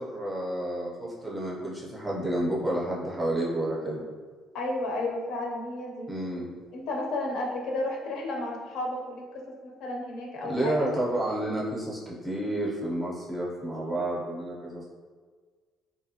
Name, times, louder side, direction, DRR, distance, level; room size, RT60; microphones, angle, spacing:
voice 1, 0.0-4.0 6.1-6.5 10.4-14.9, right 1 dB, 10° right, -5 dB, 0.5 m, -30 dB
voice 2, 4.5-6.1 6.7-10.9, left 2 dB, 65° left, 0 dB, 0.5 m, -32 dB
2.9 x 2.6 x 2.7 m, 1.5 s
cardioid pair, 175°, 0 cm